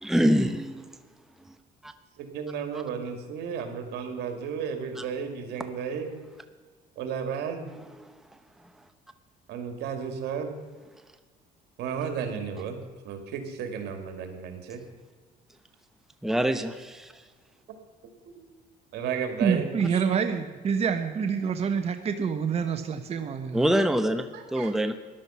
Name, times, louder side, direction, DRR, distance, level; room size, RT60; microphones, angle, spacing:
voice 1, 0.0-0.9 1.5-1.6 1.8-1.9 5.0-5.1 7.7-8.1 16.2-17.1 23.5-24.9, equal, ahead, 8 dB, 0.8 m, -25 dB
voice 2, 2.2-6.1 7.0-7.7 9.5-10.6 11.8-12.8 13.0-14.8 18.4-18.5 18.9-20.0 24.3-24.7, right 7 dB, 80° right, 6 dB, 2.4 m, -33 dB
voice 3, 19.4-23.6, right 6 dB, 40° right, 6 dB, 1.0 m, -27 dB
14.5 x 11.0 x 5.8 m, 1.4 s
cardioid pair, 110°, 17 cm